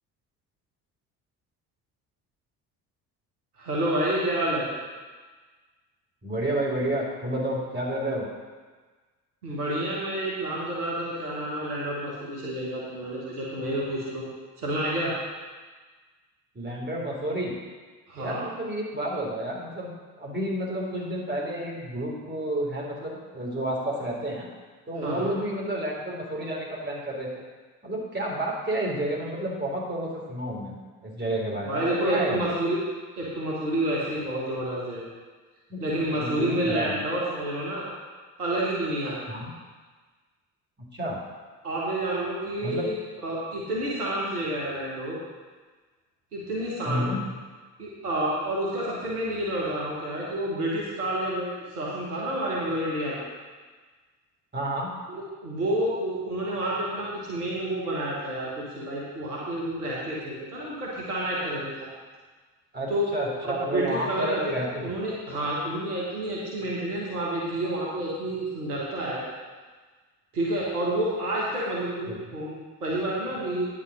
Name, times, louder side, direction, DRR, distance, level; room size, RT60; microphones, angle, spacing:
voice 1, 3.6-4.7 9.4-14.2 14.6-15.1 18.1-18.4 25.0-25.3 31.6-32.8 33.1-35.1 35.8-37.9 38.4-39.2 41.6-42.9 43.2-45.2 46.3-47.1 47.8-53.2 55.1-61.7 62.9-63.1 63.4-69.2 70.3-73.7, right 1 dB, 85° right, -5 dB, 1.6 m, -29 dB
voice 2, 6.2-8.3 16.6-17.5 18.2-24.5 24.9-27.4 27.8-30.8 31.0-32.5 35.7-35.8 36.2-37.0 39.3-39.5 40.8-41.2 42.6-42.9 46.9-47.2 54.5-54.9 62.7-65.0 72.1-72.4, right 1 dB, 25° right, -3 dB, 3.5 m, -30 dB
9.6 x 5.5 x 6.3 m, 1.4 s
figure-of-eight pair, 50°, 45 cm